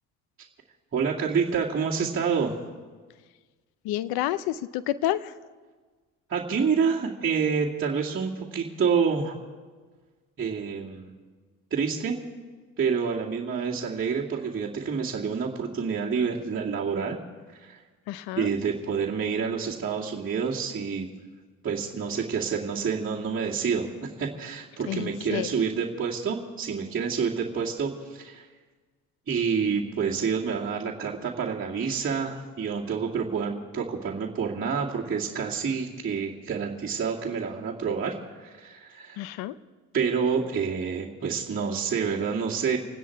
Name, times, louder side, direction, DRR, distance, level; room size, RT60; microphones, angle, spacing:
voice 1, 0.9-2.5 6.3-9.4 10.4-11.1 11.7-12.2 12.8-17.2 17.6-17.8 18.4-21.1 21.6-28.5 29.3-39.2 39.9-42.8, right 6 dB, 35° right, -5 dB, 2.3 m, -28 dB
voice 2, 3.8-5.3 18.1-18.5 24.9-25.5 39.2-39.5, left 13 dB, 75° left, 16 dB, 0.7 m, -29 dB
27.0 x 10.0 x 4.7 m, 1.4 s
supercardioid pair, 70°, 38 cm